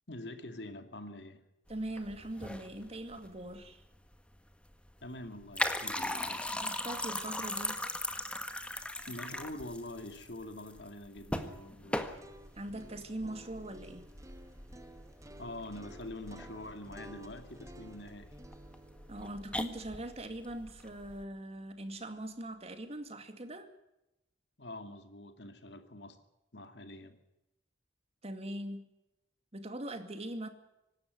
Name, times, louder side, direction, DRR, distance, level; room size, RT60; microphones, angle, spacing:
voice 1, 0.1-1.5 5.0-6.5 9.1-12.2 15.4-18.4 24.6-26.2 26.5-27.2, left 1 dB, 75° left, 2.4 m, -45 dB
sound 1, 1.7-21.2, left 1 dB, 5° left, 1.5 m, -40 dB
voice 2, 1.7-3.8 6.5-7.8 12.6-14.1 19.1-23.7 28.2-28.9 29.5-30.5, right 1 dB, 35° right, 2.3 m, -41 dB
sound 2, 12.0-22.0, right 1 dB, 20° right, 1.2 m, -55 dB
25.0 x 12.5 x 9.5 m
head